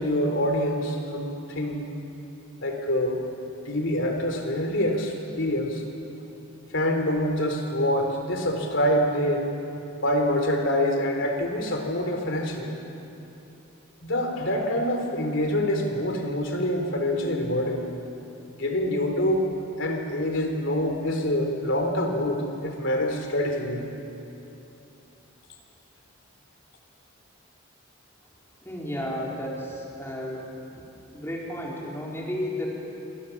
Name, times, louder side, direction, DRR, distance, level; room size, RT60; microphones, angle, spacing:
voice 1, 0.0-1.9 2.6-3.2 3.7-5.8 6.7-9.5 10.0-12.7 14.0-17.9 18.6-19.5 19.8-23.9, left 1 dB, 60° left, 3 dB, 3.8 m, -26 dB
voice 2, 28.6-30.5 31.1-32.7, left 1 dB, 10° left, -3 dB, 4.3 m, -32 dB
28.5 x 24.0 x 7.3 m, 3.0 s
head